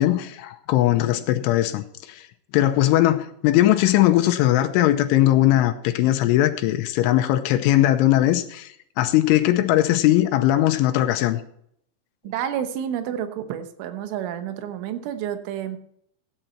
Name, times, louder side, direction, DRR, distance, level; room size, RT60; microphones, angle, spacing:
voice 1, 0.0-2.2 2.5-8.7 9.0-11.4, left 14 dB, 90° left, 6 dB, 3.2 m, -19 dB
voice 2, 12.2-15.8, right 9 dB, 80° right, 8 dB, 3.5 m, -29 dB
15.5 x 9.1 x 4.3 m, 0.70 s
omnidirectional pair, 5.6 m